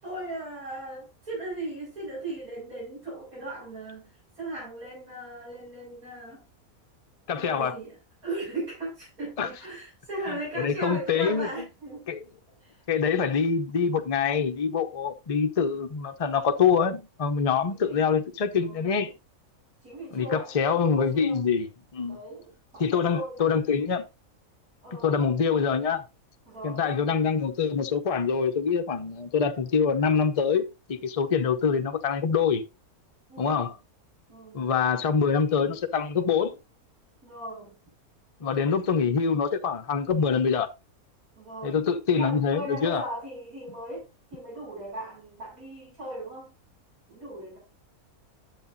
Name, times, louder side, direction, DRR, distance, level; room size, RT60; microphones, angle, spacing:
voice 1, 0.0-6.5 7.3-12.1 12.6-12.8 17.7-18.0 18.5-19.2 19.8-21.4 22.1-23.7 24.8-25.2 26.5-27.3 33.3-33.8 34.3-34.7 37.2-37.8 41.4-46.6 47.1-47.6, right 1 dB, 75° right, 7.2 m, -38 dB
voice 2, 7.3-7.7 9.4-9.5 10.6-11.5 12.1-12.2 12.9-19.1 20.1-21.7 21.9-22.2 22.8-24.0 25.0-26.0 26.6-32.6 33.4-33.7 34.5-36.6 38.4-40.7 41.6-43.0, left 6 dB, 35° left, 0.6 m, -25 dB
10.5 x 8.1 x 2.7 m
omnidirectional pair, 1.5 m